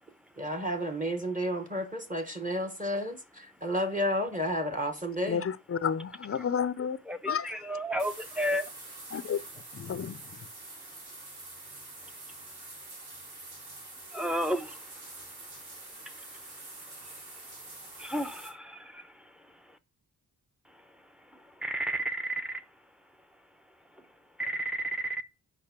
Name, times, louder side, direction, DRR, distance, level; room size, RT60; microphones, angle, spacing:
voice 1, 0.4-5.4, equal, 20° right, 1.2 m, -31 dB
voice 2, 5.3-7.0 7.3-7.5 9.1-9.4 9.7-10.2, left 7 dB, 40° left, 0.5 m, -31 dB
voice 3, 7.0-8.6 14.1-15.2 15.8-16.6 16.9-19.8 20.7-20.8 21.3-22.6 24.0-24.1 24.4-25.2, right 1 dB, ahead, 0.7 m, -34 dB
sound 1, 8.0-18.5, right 2 dB, 90° right, 4.4 m, -46 dB
8.7 x 5.4 x 5.7 m
wide cardioid pair, 145°, 37 cm